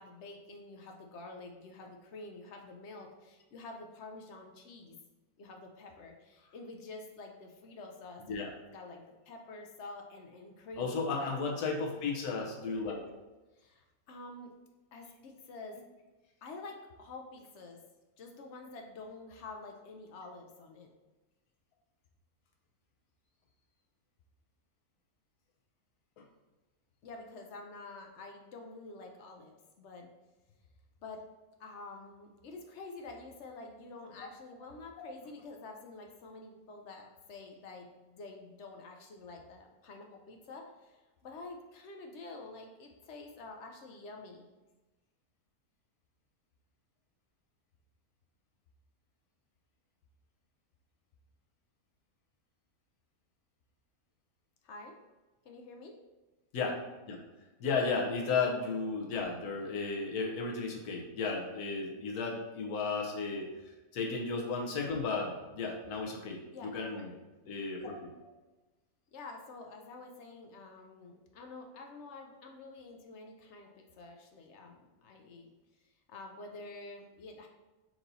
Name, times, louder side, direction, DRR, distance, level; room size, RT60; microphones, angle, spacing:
voice 1, 0.0-5.0 5.4-8.4 8.7-11.6 13.6-14.5 14.9-15.8 16.4-17.8 18.2-20.9 27.0-30.1 31.0-31.2 31.6-44.5 54.6-54.9 55.4-55.9 66.5-67.1 69.1-75.5 76.1-77.5, left 3 dB, 65° left, 2 dB, 0.7 m, -48 dB
voice 2, 10.8-13.1 56.5-57.2 57.6-63.5 63.9-67.1 67.5-68.2, left 4 dB, 90° left, 0 dB, 1.3 m, -34 dB
4.5 x 2.7 x 4.0 m, 1.1 s
omnidirectional pair, 1.6 m